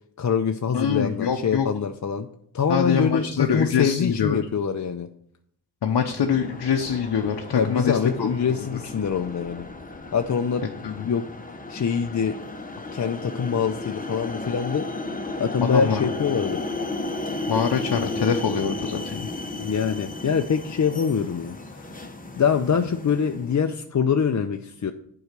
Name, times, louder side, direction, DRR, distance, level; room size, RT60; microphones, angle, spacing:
voice 1, 0.2-2.3 2.5-5.1 7.6-9.7 10.1-10.6 11.0-11.3 11.7-12.4 12.9-14.9 15.4-16.7 19.6-21.9 22.4-24.9, left 6 dB, 45° left, 5 dB, 0.6 m, -24 dB
voice 2, 0.7-1.7 2.7-4.4 5.8-8.8 10.8-11.0 15.6-16.0 17.5-19.3, left 7 dB, 65° left, 3 dB, 0.8 m, -24 dB
sound 1, 6.2-23.7, left 2 dB, 20° left, 1.1 m, -34 dB
7.9 x 4.8 x 6.6 m, 0.69 s
cardioid pair, 45°, 41 cm